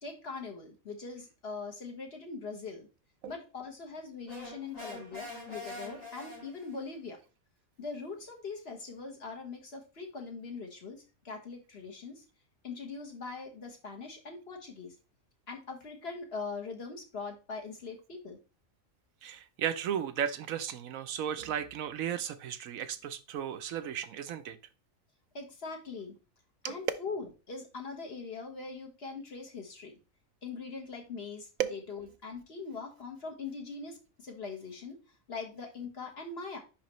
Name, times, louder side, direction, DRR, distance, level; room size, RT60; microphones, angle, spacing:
voice 1, 0.0-2.9 3.3-7.2 7.8-12.2 12.6-15.0 15.5-18.4 25.3-26.2 26.6-30.0 30.4-35.0 35.3-36.6, left 4 dB, 50° left, 1.6 m, -42 dB
sound 1, 4.3-6.9, left 2 dB, 70° left, 4.2 m, -44 dB
voice 2, 19.2-24.6 26.6-26.9 31.6-31.8, right 9 dB, 85° right, 1.1 m, -34 dB
10.0 x 3.4 x 3.1 m
omnidirectional pair, 1.4 m